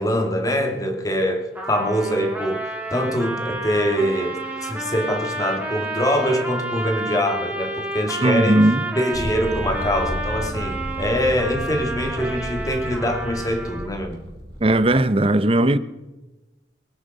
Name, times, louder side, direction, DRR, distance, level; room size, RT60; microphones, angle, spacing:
voice 1, 0.0-8.6 9.0-14.2, equal, 20° left, 2.1 m, -24 dB
Trumpet, 1.5-14.0, right 2 dB, 10° right, 2.6 m, -31 dB
voice 2, 8.2-8.8 14.6-15.8, right 1 dB, 30° right, 0.7 m, -17 dB
sound 1, 9.1-15.0, equal, 70° right, 3.5 m, -33 dB
22.5 x 9.1 x 5.4 m
head